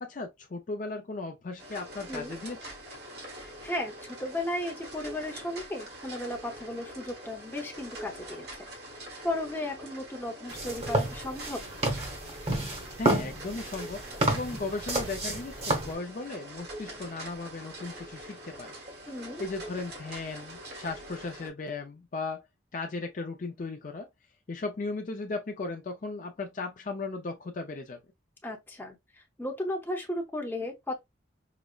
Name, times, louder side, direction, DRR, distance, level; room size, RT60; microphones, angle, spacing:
voice 1, 0.0-2.7 13.0-18.7 19.4-22.4 22.7-24.1 24.5-28.0, left 3 dB, 45° left, 0.4 m, -36 dB
sound 1, 1.6-21.5, right 1 dB, 55° right, 1.1 m, -44 dB
voice 2, 2.1-2.4 3.3-8.7 9.2-11.6 19.1-19.4 28.4-31.0, left 1 dB, 10° left, 0.7 m, -35 dB
sound 2, 10.5-15.9, right 1 dB, 35° right, 0.9 m, -30 dB
4.9 x 2.0 x 2.3 m
head